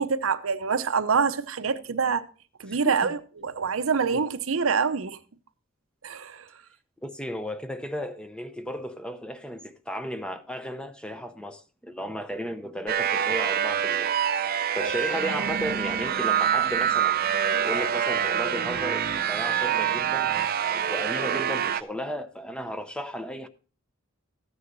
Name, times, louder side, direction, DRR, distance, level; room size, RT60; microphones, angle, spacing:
voice 1, 0.0-2.3 2.6-5.2 6.0-6.5 14.8-14.9, right 5 dB, 85° right, 0.7 m, -26 dB
voice 2, 2.7-3.1 7.0-14.2 14.7-20.3 20.7-23.5, equal, 5° left, 0.6 m, -34 dB
sound 1, 12.9-21.8, right 9 dB, 45° right, 0.5 m, -26 dB
14.5 x 9.5 x 2.6 m
head